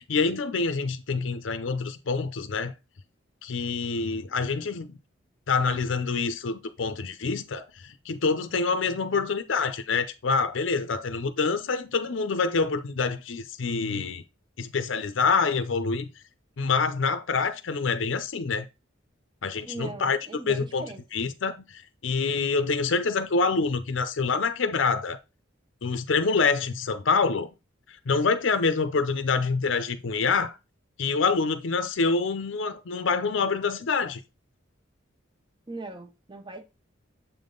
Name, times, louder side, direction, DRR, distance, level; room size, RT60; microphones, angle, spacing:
voice 1, 0.0-2.7 3.4-5.0 5.5-14.2 14.6-16.1 16.6-18.7 19.4-20.2 20.5-20.8 21.1-25.2 25.8-27.5 28.1-30.6 31.0-34.2, left 4 dB, 75° left, 0.6 m, -26 dB
voice 2, 19.7-21.0 35.7-36.6, right 2 dB, 25° right, 0.7 m, -39 dB
7.3 x 3.6 x 3.8 m
head